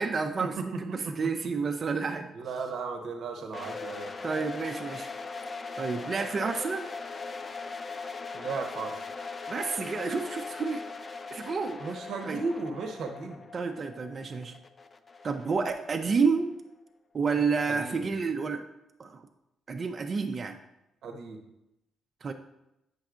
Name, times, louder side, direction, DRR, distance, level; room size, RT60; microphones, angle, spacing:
voice 1, 0.0-2.3 4.2-5.1 5.8-6.9 9.5-10.8 11.3-11.8 12.2-12.4 13.5-14.6 15.2-16.5 17.1-18.6 19.0-19.3 19.7-20.6 22.2-22.3, right 4 dB, 40° right, 5 dB, 0.4 m, -30 dB
voice 2, 2.3-4.1 8.3-9.0 11.8-13.4 17.7-18.1 21.0-21.4, right 4 dB, 70° right, 4 dB, 0.8 m, -35 dB
sound 1, 3.5-16.4, left 4 dB, 35° left, 0.4 m, -40 dB
7.8 x 5.3 x 2.4 m, 0.88 s
cardioid pair, 90°, 0 cm